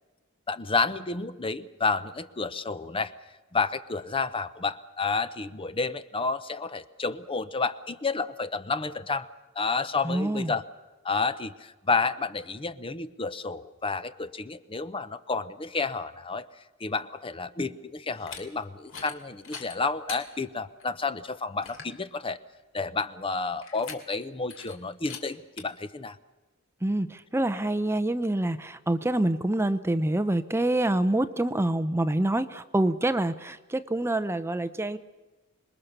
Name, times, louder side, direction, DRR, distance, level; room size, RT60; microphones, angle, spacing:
voice 1, 0.5-3.1 3.5-9.3 9.6-10.6 11.0-16.5 16.8-22.4 22.7-26.2, left 4 dB, 25° left, 13 dB, 0.8 m, -30 dB
voice 2, 10.0-10.5 26.8-35.0, right 1 dB, 10° right, 12 dB, 0.7 m, -26 dB
sound 1, 18.1-18.4 18.8-19.2 19.4-20.2 20.8-20.9 21.3-21.4 21.6-22.0 23.6-24.2 24.5-24.7 25.0-25.2 25.6-25.7, left 6 dB, 65° left, 2.9 m, -41 dB
26.5 x 21.0 x 6.8 m, 1.2 s
head